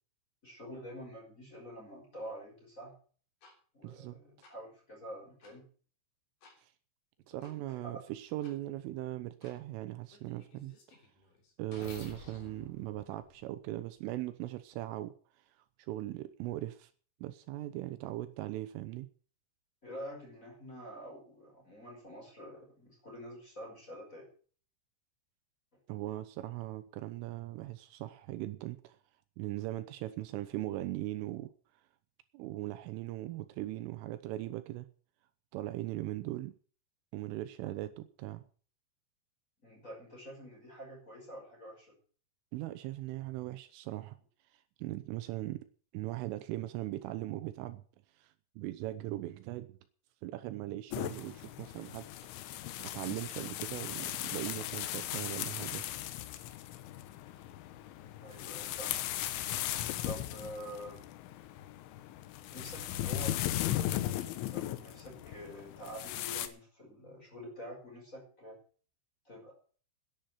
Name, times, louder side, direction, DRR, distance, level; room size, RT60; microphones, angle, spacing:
voice 1, 0.4-2.9 3.7-5.7 7.4-7.9 19.8-24.3 39.6-41.9 57.8-58.9 60.0-61.0 62.5-63.9 64.5-68.6 69.2-69.5, equal, 15° left, -1 dB, 5.4 m, -47 dB
sound 1, 3.4-3.5 4.4-4.5 5.4-5.5 6.4-6.6 7.4-7.5 8.4-8.5 9.4-9.6 10.1-14.0, left 3 dB, 45° left, 4.4 m, -53 dB
voice 2, 3.8-4.2 6.6-6.7 7.3-10.7 11.6-15.1 15.8-16.9 17.2-19.1 25.9-29.0 29.4-31.5 32.3-34.9 35.5-36.6 37.1-38.4 42.5-44.2 44.5-45.6 45.9-47.8 48.2-49.8 50.2-52.1 52.5-55.8, right 15 dB, 80° right, 11 dB, 3.2 m, -39 dB
sound 2, 50.9-66.5, left 13 dB, 75° left, 3.2 m, -37 dB
10.5 x 9.4 x 8.1 m, 0.43 s
omnidirectional pair, 5.8 m